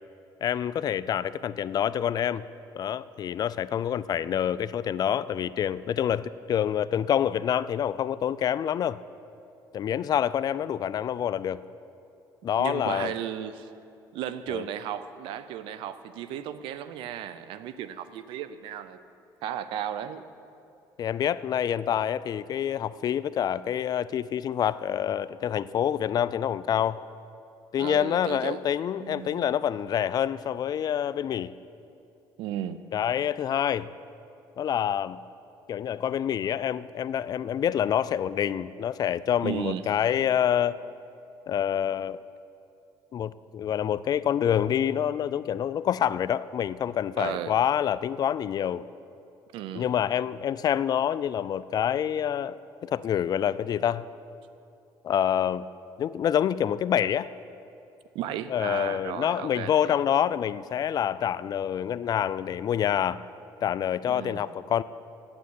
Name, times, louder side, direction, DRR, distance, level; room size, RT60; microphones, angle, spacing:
voice 1, 0.4-2.4 2.7-9.0 9.7-11.6 12.4-13.1 14.5-14.6 21.0-27.0 27.7-31.5 32.9-33.9 34.6-35.2 35.7-40.7 41.5-42.2 43.1-48.9 49.7-54.0 55.0-55.7 56.0-57.3 58.5-63.2 63.6-64.8, left 9 dB, 50° left, 17 dB, 0.4 m, -27 dB
voice 2, 12.6-13.7 14.1-19.0 19.4-20.2 27.8-28.6 29.0-29.5 32.4-32.8 39.4-39.9 47.2-47.5 49.5-49.9 58.1-60.0 64.1-64.4, right 10 dB, 80° right, 13 dB, 0.6 m, -35 dB
8.8 x 8.1 x 9.4 m, 2.6 s
cardioid pair, 90°, 9 cm